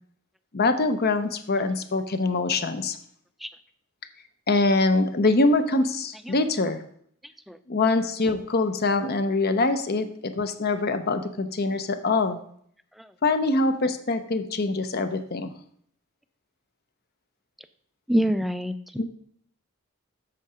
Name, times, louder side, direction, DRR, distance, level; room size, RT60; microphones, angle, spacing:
voice 1, 0.5-3.0 4.5-6.8 7.7-12.4 13.2-15.5 19.0-19.1, left 3 dB, 45° left, 10 dB, 0.7 m, -24 dB
voice 2, 18.1-19.1, equal, ahead, 12 dB, 0.3 m, -25 dB
8.3 x 6.5 x 4.9 m, 0.64 s
head